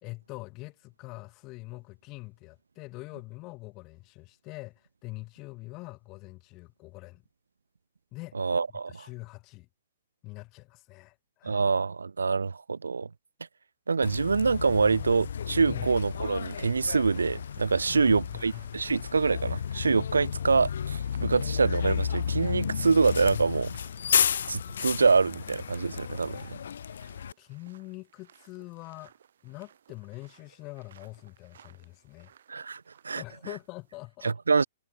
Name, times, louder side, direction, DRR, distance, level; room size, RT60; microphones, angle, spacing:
voice 1, 0.0-7.2 8.1-8.4 8.9-9.7 10.2-11.6 15.6-15.9 17.9-18.6 27.1-29.1 29.4-32.3 33.1-34.3, left 23 dB, 35° left, 3.0 m, -44 dB
voice 2, 8.3-9.1 11.4-13.1 13.9-23.8 24.5-26.6 32.5-33.2 34.2-34.6, right 4 dB, 80° right, 0.5 m, -25 dB
Bus, 14.0-27.3, left 8 dB, 65° left, 0.6 m, -32 dB
sound 1, 16.3-34.0, right 9 dB, 65° right, 7.7 m, -60 dB
figure-of-eight pair, 115°, 0 cm